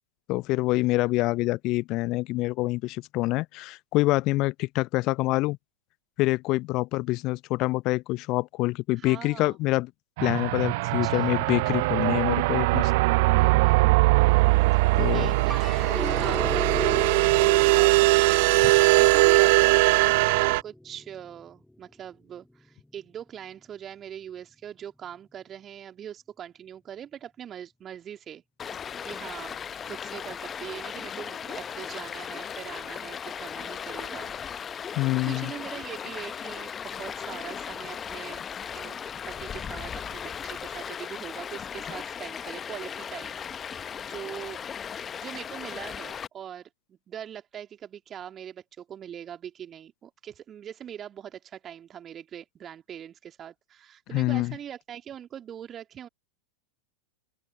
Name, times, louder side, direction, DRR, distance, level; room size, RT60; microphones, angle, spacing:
voice 1, 0.3-5.6 6.2-9.9 10.2-12.9 15.0-15.4 35.0-35.5 54.1-54.6, left 20 dB, 40° left, 0.9 m, -26 dB
voice 2, 9.0-9.5 11.0-11.5 13.3-14.0 15.0-29.6 29.8-34.4 34.9-38.4 38.7-39.0 39.2-44.6 45.1-56.1, right 9 dB, 25° right, 2.9 m, -42 dB
sound 1, 10.2-20.6, right 24 dB, 50° right, 0.6 m, -21 dB
sound 2, 15.5-21.9 22.4-23.1, left 1 dB, 5° left, 2.3 m, -36 dB
Stream, 28.6-46.3, left 7 dB, 20° left, 1.2 m, -37 dB
open air
figure-of-eight pair, 90°, 0 cm